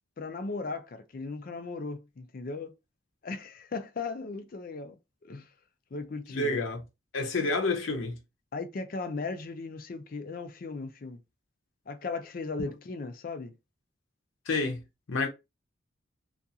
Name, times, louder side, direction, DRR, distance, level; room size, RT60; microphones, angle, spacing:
voice 1, 0.2-2.7 3.2-5.0 5.2-5.5 5.9-6.6 8.5-11.2 11.9-13.5, left 3 dB, 45° left, 0.4 m, -37 dB
voice 2, 6.3-6.8 7.1-8.2 14.5-14.8 15.1-15.3, left 3 dB, 85° left, 0.6 m, -29 dB
2.5 x 2.3 x 2.7 m
head